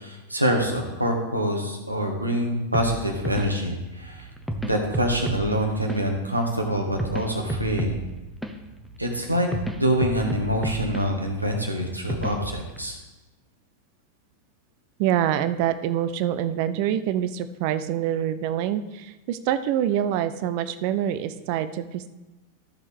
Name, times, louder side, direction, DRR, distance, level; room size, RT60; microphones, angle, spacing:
voice 1, 0.0-4.3 4.6-8.0 9.0-9.5 9.7-13.0, equal, 85° right, 2 dB, 1.6 m, -25 dB
sound 1, 2.7-12.8, equal, ahead, 0.9 m, -33 dB
voice 2, 15.0-22.1, right 10 dB, 45° right, 12 dB, 0.5 m, -25 dB
13.5 x 6.4 x 3.6 m, 1.1 s
figure-of-eight pair, 90°, 0 cm